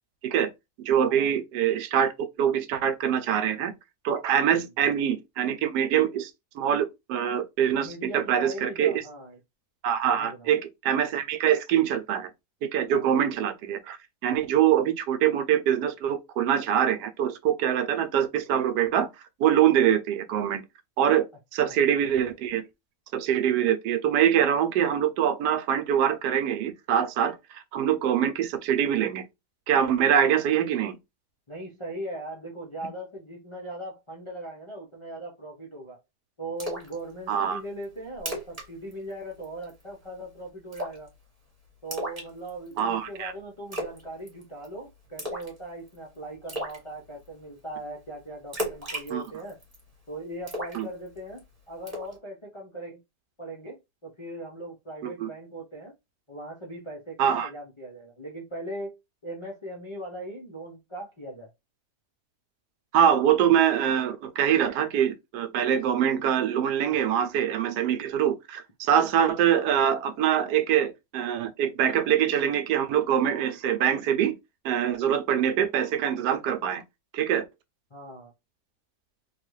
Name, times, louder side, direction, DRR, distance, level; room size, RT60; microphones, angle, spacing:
voice 1, 0.8-2.1 2.4-3.7 4.0-9.0 9.8-12.3 12.6-19.1 19.4-20.6 21.0-21.3 21.5-22.6 23.1-29.3 29.7-31.0 37.3-37.6 42.8-43.3 49.1-49.2 50.8-50.9 55.0-55.3 57.2-57.5 62.9-74.3 74.6-76.8 77.1-77.4, right 9 dB, 90° right, 1.2 m, -24 dB
voice 2, 7.8-9.4 10.1-10.5 12.9-13.1 21.6-21.8 31.5-36.0 36.4-41.1 41.8-49.6 50.1-53.0 53.4-55.9 56.3-59.0 59.2-61.5 77.9-78.3, right 1 dB, 45° left, 0.4 m, -39 dB
Splash splatter, 36.6-36.9 37.3-37.4 37.8-37.9 38.2-38.7 38.9-39.1 39.4-39.8 40.7-41.1 41.9-42.8 43.7-44.0 44.3-44.7 45.2-45.6 45.9-46.0 46.5-46.8 48.5-49.8 50.5-51.4 51.9-52.1, equal, 25° right, 1.4 m, -34 dB
3.3 x 2.3 x 3.1 m
omnidirectional pair, 1.7 m